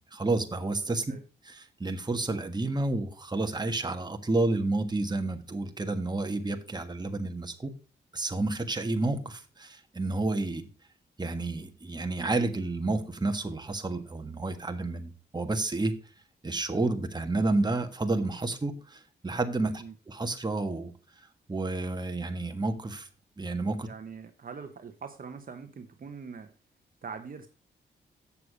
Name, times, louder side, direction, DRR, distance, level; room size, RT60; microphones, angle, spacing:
voice 1, 0.1-1.0 1.4-7.7 8.1-10.7 11.2-15.9 16.4-20.9 21.5-23.1 23.4-23.9, right 2 dB, 25° right, 1.5 m, -30 dB
voice 2, 23.8-26.5 27.0-27.5, right 5 dB, 50° right, 1.1 m, -42 dB
8.4 x 6.8 x 5.1 m
cardioid pair, 70°, 18 cm